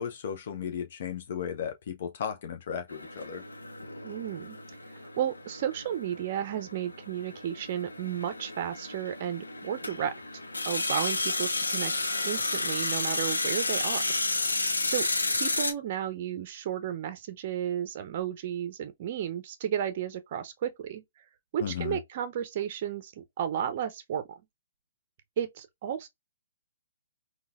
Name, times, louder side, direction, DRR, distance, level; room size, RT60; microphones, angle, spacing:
voice 1, 0.0-3.4 21.6-22.0, left 8 dB, 50° left, 0.5 m, -35 dB
sound 1, 2.9-15.7, left 2 dB, 85° left, 0.7 m, -32 dB
voice 2, 4.0-4.6 4.9-10.1 10.6-11.9 12.2-14.0 14.4-15.1 15.3-21.0 21.5-24.2 25.4-26.1, right 10 dB, 45° right, 0.5 m, -33 dB
3.8 x 2.2 x 2.4 m
figure-of-eight pair, 130°, 0 cm